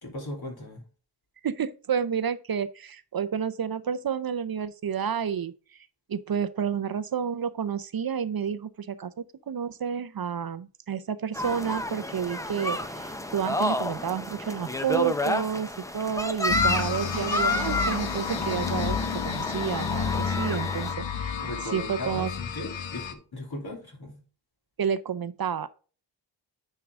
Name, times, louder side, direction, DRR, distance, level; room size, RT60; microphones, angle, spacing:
voice 1, 0.0-0.8 21.4-24.2, left 1 dB, 60° left, 3.5 m, -37 dB
voice 2, 1.4-5.5 6.1-9.1 9.5-21.4 21.7-22.3 24.8-25.7, right 7 dB, 55° right, 0.6 m, -30 dB
sound 1, 11.3-20.9, left 1 dB, 5° left, 0.8 m, -30 dB
sound 2, 16.5-23.1, left 7 dB, 85° left, 1.0 m, -31 dB
9.5 x 4.7 x 3.6 m
wide cardioid pair, 90°, 43 cm